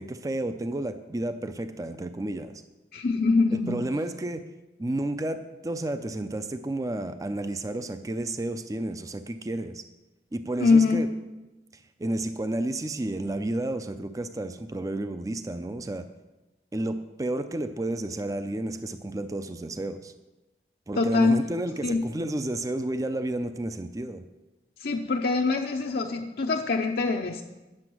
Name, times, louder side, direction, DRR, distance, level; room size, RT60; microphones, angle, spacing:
voice 1, 0.0-2.6 3.5-4.4 4.8-9.8 10.3-11.1 11.7-16.0 16.7-20.1 20.9-24.2, right 1 dB, 20° right, 10 dB, 0.4 m, -31 dB
voice 2, 2.9-3.8 10.6-11.0 21.0-21.4 21.8-22.0 24.8-27.4, left 4 dB, 60° left, 2 dB, 0.6 m, -24 dB
9.7 x 6.9 x 6.0 m, 1.1 s
head